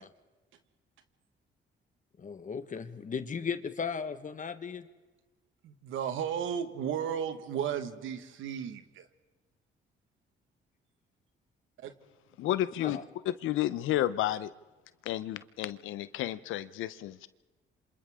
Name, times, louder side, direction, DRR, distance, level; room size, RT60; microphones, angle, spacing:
voice 1, 2.2-4.8 12.8-13.0, left 6 dB, 40° left, 10 dB, 1.5 m, -36 dB
voice 2, 5.6-9.0 11.8-11.9, right 8 dB, 80° right, 9 dB, 1.7 m, -34 dB
voice 3, 12.4-13.0 13.2-14.5 15.0-17.3, left 13 dB, 90° left, 14 dB, 0.9 m, -31 dB
28.5 x 26.5 x 3.7 m, 1.2 s
cardioid pair, 90°, 20 cm